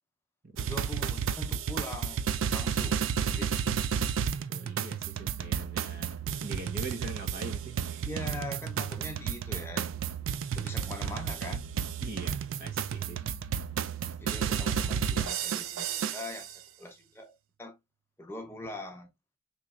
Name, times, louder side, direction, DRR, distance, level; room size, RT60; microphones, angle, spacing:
voice 1, 0.6-2.2 2.5-3.8 8.1-9.9 10.6-11.6 14.2-17.3 17.6-17.8 18.2-19.1, left 1 dB, 10° left, 0.6 m, -42 dB
sound 1, 0.6-16.5, right 7 dB, 85° right, 0.3 m, -32 dB
voice 2, 4.5-6.1 6.4-8.1 12.0-13.2, right 2 dB, 50° right, 0.8 m, -42 dB
3.9 x 3.1 x 2.3 m
head